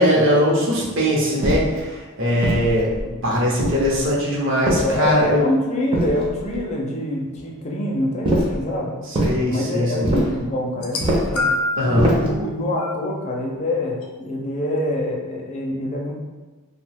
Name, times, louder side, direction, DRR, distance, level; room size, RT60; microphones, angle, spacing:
voice 1, 0.0-5.4 9.1-10.1 11.8-12.1, equal, 60° right, -4 dB, 0.7 m, -20 dB
sound 1, 1.4-1.8 2.4-3.1 3.6-4.1 4.7-5.3 5.9-6.6 8.2-8.6 9.1-9.4 10.0-10.4 11.0-11.4 12.0-12.4, right 1 dB, 25° right, 0.5 m, -23 dB
voice 2, 4.8-8.9 9.5-11.5 11.8-16.1, left 1 dB, 30° left, -1 dB, 0.4 m, -25 dB
sound 2, 10.7-11.9 12.8-13.0 14.0-14.1, left 2 dB, 85° left, 0.5 m, -24 dB
2.7 x 2.1 x 3.3 m, 1.3 s
head